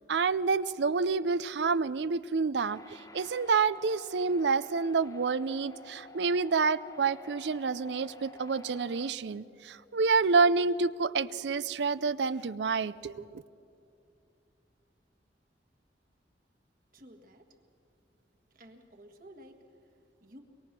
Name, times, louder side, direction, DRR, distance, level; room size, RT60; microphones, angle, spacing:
voice 1, 0.0-13.4, right 4 dB, 80° right, 17 dB, 0.5 m, -28 dB
sound 1, 2.6-9.1, left 3 dB, 20° left, 0.9 m, -51 dB
voice 2, 16.9-17.4 18.5-19.6 20.2-20.4, equal, 50° right, 4 dB, 1.7 m, -52 dB
23.0 x 23.0 x 6.0 m, 2.6 s
head